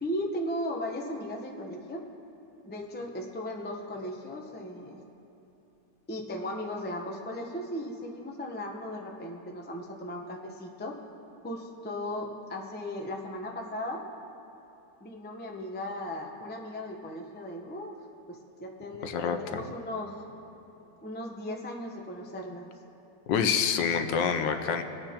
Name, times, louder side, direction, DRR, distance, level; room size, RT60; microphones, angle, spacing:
voice 1, 0.0-2.0 2.6-5.0 6.1-11.0 11.4-14.1 15.0-18.0 18.3-20.1 21.0-22.7, left 1 dB, 15° left, 0 dB, 0.3 m, -37 dB
voice 2, 19.0-19.6 23.3-24.8, left 7 dB, 80° left, 7 dB, 1.4 m, -27 dB
23.5 x 8.8 x 2.9 m, 2.9 s
omnidirectional pair, 2.0 m